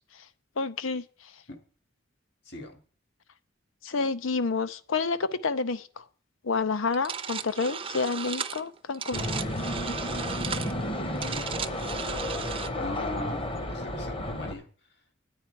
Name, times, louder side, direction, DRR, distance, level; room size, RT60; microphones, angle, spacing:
voice 1, 0.6-1.0 3.8-6.0 6.4-9.2, left 4 dB, 90° left, 14 dB, 0.7 m, -29 dB
voice 2, 2.5-2.8 11.0-11.5 12.8-14.7, left 1 dB, 55° left, 5 dB, 2.0 m, -38 dB
sound 1, 6.9-12.7, right 7 dB, 25° right, 0.5 m, -35 dB
sound 2, 9.1-14.5, left 1 dB, 25° left, 0.9 m, -32 dB
10.0 x 9.1 x 4.6 m, 0.42 s
head